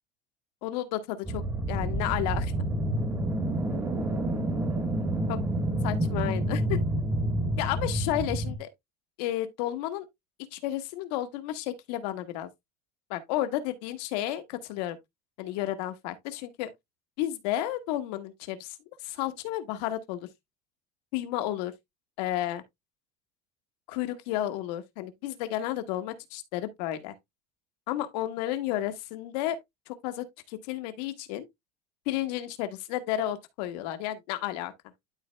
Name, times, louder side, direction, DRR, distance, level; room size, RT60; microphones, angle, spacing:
voice 1, 0.6-1.4 1.7-2.5 5.3-5.4 5.8-6.8 7.6-8.7 9.2-10.0 10.5-12.5 13.1-15.0 15.4-16.7 17.2-18.8 19.0-20.3 21.1-21.7 22.2-22.6 23.9-27.1 27.9-29.6 29.9-31.4 32.1-34.7, left 13 dB, 80° left, 1.2 m, -32 dB
sound 1, 1.2-8.6, right 1 dB, 10° right, 1.3 m, -28 dB
12.0 x 4.2 x 2.2 m
cardioid pair, 165°, 21 cm